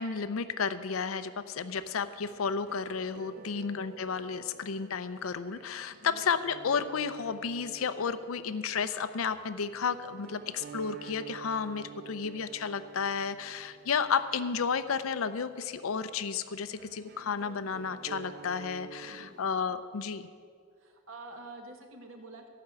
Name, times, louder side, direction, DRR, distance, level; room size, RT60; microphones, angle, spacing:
voice 1, 0.0-20.3, left 6 dB, 85° left, 13 dB, 0.6 m, -32 dB
sound 1, 1.7-19.7, right 6 dB, 50° right, 0.4 m, -50 dB
voice 2, 3.4-3.7 5.9-6.2 18.8-19.5 20.8-22.5, right 2 dB, 75° right, 3 dB, 1.6 m, -48 dB
14.5 x 5.8 x 8.0 m, 2.1 s
head